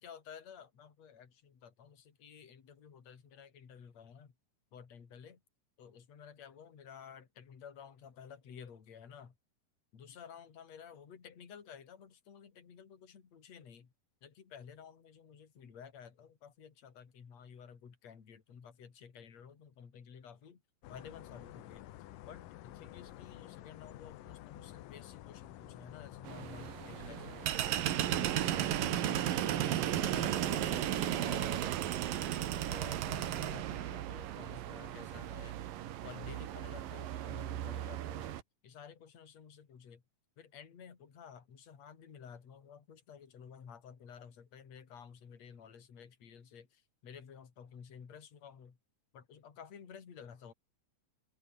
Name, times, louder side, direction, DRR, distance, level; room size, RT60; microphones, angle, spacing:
voice 1, 0.0-4.3 4.7-5.4 5.8-9.3 9.9-13.9 14.2-20.6 20.9-21.9 22.2-29.3 29.5-30.8 31.1-31.8 32.2-35.6 36.0-40.0 40.4-48.8 49.1-50.5, left 7 dB, 55° left, 4.2 m, -53 dB
sound 1, 20.8-31.4, left 14 dB, 80° left, 2.7 m, -50 dB
sound 2, 26.3-38.4, right 12 dB, 90° right, 3.2 m, -35 dB
omnidirectional pair, 3.9 m